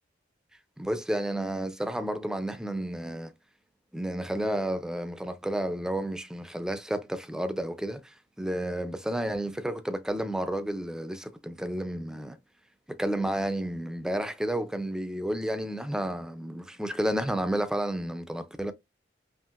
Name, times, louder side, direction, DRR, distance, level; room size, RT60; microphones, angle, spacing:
voice 1, 0.8-3.3 3.9-12.4 12.9-18.7, right 1 dB, 5° right, 0.4 m, -31 dB
5.6 x 2.5 x 2.4 m
head